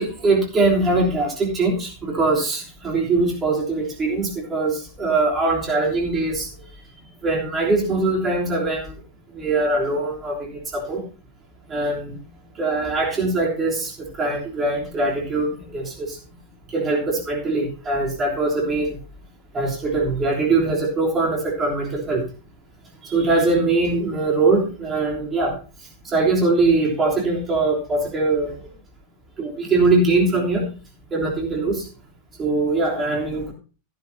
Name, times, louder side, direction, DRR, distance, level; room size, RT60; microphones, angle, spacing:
voice 1, 0.0-6.5 7.2-8.9 9.3-11.0 11.7-12.2 12.6-13.9 14.2-16.2 16.7-19.0 19.5-22.2 23.0-25.5 26.0-28.6 29.4-30.6 31.1-31.9 32.4-33.5, right 3 dB, 20° right, -2 dB, 3.4 m, -22 dB
15.0 x 11.5 x 2.8 m, 0.35 s
figure-of-eight pair, 90°, 0 cm